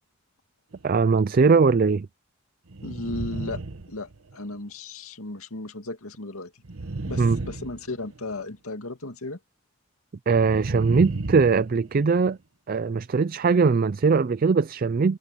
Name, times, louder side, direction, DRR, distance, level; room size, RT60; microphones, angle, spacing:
sound 1, 0.7-1.1 2.7-4.6 6.6-8.3 10.3-12.3, right 2 dB, 90° right, 1.2 m, -34 dB
voice 1, 0.8-2.1 7.2-7.4 10.3-12.4 12.7-15.2, right 4 dB, 40° right, 0.4 m, -20 dB
voice 2, 2.8-3.6 3.9-6.5 7.1-9.4, left 2 dB, 90° left, 2.4 m, -35 dB
head